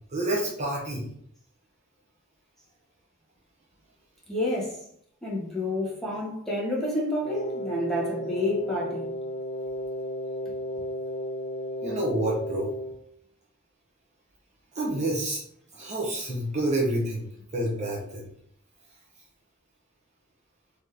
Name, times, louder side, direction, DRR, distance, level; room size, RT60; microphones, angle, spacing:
voice 1, 0.1-1.1 11.8-12.7 14.7-15.4 15.7-17.3 17.5-18.3, right 1 dB, 35° right, 0.8 m, -28 dB
voice 2, 4.3-4.8 5.2-9.1, left 1 dB, ahead, 1.2 m, -29 dB
Wind instrument woodwind instrument, 7.2-13.0, equal, 35° left, 0.5 m, -33 dB
3.8 x 3.1 x 3.3 m
head